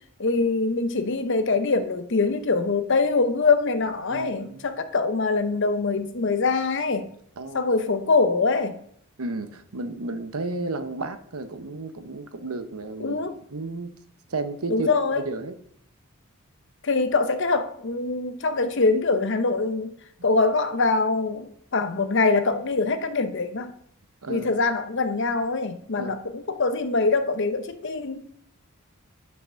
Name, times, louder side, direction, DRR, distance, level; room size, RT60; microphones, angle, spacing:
voice 1, 0.2-7.1 7.5-8.8 13.0-13.3 14.7-15.2 16.8-19.9 20.2-23.7 24.3-28.3, left 3 dB, 55° left, 0.8 m, -24 dB
voice 2, 4.1-4.7 7.4-7.7 9.2-13.2 13.5-13.9 14.3-14.9 15.3-15.6 24.2-24.5 26.0-26.1, right 3 dB, 80° right, 0.9 m, -32 dB
8.6 x 5.9 x 6.3 m
head